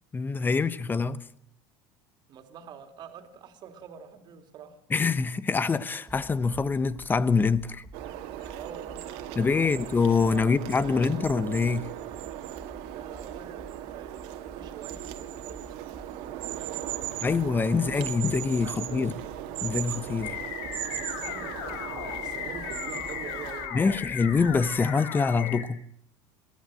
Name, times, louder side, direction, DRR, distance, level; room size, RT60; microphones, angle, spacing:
voice 1, 0.1-1.2 4.9-7.8 9.4-11.9 17.2-19.1 19.6-20.4 23.7-25.8, left 4 dB, 20° left, 1.0 m, -25 dB
voice 2, 2.3-4.8 8.5-10.0 10.3-11.1 12.9-17.2 18.3-19.2 20.9-23.9, right 7 dB, 45° right, 2.8 m, -46 dB
sound 1, 6.1-24.9, right 1 dB, 5° right, 3.2 m, -49 dB
sound 2, 7.9-23.7, right 13 dB, 70° right, 2.1 m, -38 dB
sound 3, 20.2-25.7, left 8 dB, 75° left, 4.2 m, -36 dB
22.5 x 17.0 x 7.6 m
supercardioid pair, 120°, 10 cm